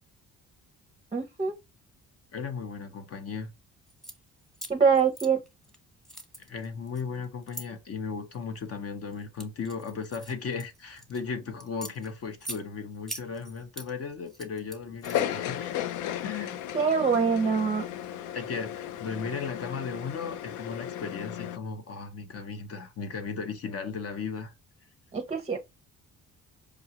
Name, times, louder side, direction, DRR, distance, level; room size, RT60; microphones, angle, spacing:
voice 1, 1.1-1.6 4.7-5.4 16.7-17.8 25.1-25.6, right 5 dB, 20° right, 0.5 m, -24 dB
voice 2, 2.3-3.5 6.4-15.8 16.2-16.6 18.3-24.5, left 5 dB, 55° left, 0.8 m, -36 dB
sound 1, 3.9-4.2 4.5-5.8 6.0-7.7 8.3-8.7 9.1-11.2 11.6-12.6 13.1-13.9 14.3-15.4, right 1 dB, ahead, 0.9 m, -42 dB
sound 2, 15.0-21.6, left 11 dB, 85° left, 0.5 m, -35 dB
4.9 x 2.3 x 2.8 m
cardioid pair, 90°, 30 cm